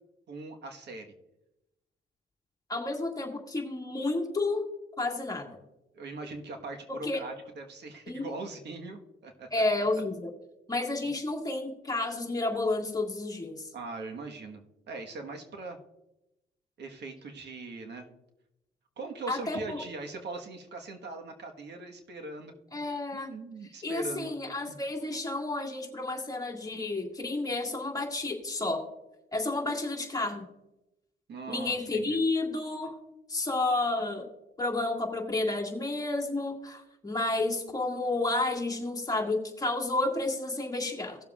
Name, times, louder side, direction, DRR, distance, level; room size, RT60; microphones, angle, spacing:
voice 1, 0.3-1.1 5.9-9.6 13.7-15.8 16.8-18.0 19.0-22.5 23.1-24.8 31.3-32.2, right 3 dB, 60° right, 4 dB, 1.4 m, -41 dB
voice 2, 2.7-4.6 5.0-5.6 7.0-7.2 8.1-8.3 9.5-10.3 10.7-13.7 19.3-19.8 22.7-23.3 23.8-28.8 29.3-30.5 31.5-32.9 33.3-34.2 34.6-41.2, left 2 dB, 20° left, 0 dB, 2.1 m, -31 dB
17.5 x 7.1 x 2.4 m, 0.92 s
cardioid pair, 90°, 20 cm